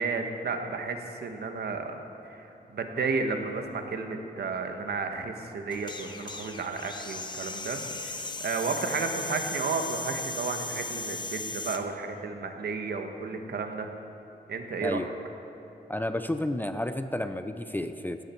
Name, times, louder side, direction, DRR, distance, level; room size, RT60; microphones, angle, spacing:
voice 1, 0.0-1.9 2.2-13.9 14.5-15.1, right 4 dB, 70° right, 5 dB, 1.3 m, -32 dB
sound 1, 5.7-11.8, left 3 dB, 25° left, 0.8 m, -37 dB
voice 2, 15.9-18.2, left 1 dB, 10° left, 9 dB, 0.4 m, -31 dB
18.0 x 14.0 x 4.5 m, 2.9 s
wide cardioid pair, 165°, 17 cm